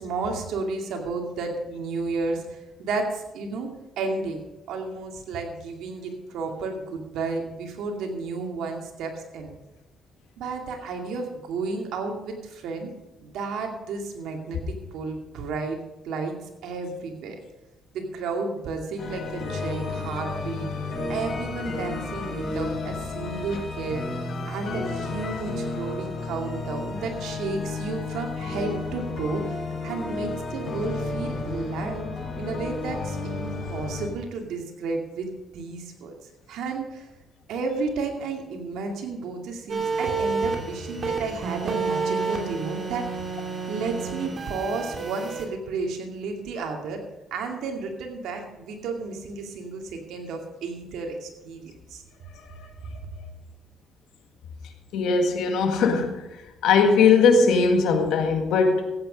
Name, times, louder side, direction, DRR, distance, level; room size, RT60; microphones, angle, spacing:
voice 1, 0.0-3.7 4.0-9.5 10.4-12.9 13.2-15.8 16.0-16.3 16.6-17.4 17.9-20.7 21.1-24.1 24.5-29.5 29.8-32.1 32.4-35.3 35.5-36.1 36.5-37.1 37.5-43.1 43.7-47.0 47.3-52.0, right 4 dB, 85° right, 3 dB, 2.3 m, -32 dB
sound 1, 19.0-34.1, left 3 dB, 60° left, 5.6 m, -32 dB
sound 2, 39.7-45.5, right 4 dB, 50° right, 2.6 m, -30 dB
voice 2, 54.9-56.2 56.6-58.9, left 5 dB, 85° left, 4 dB, 1.8 m, -19 dB
14.5 x 8.8 x 5.2 m, 1.0 s
cardioid pair, 90°, 0 cm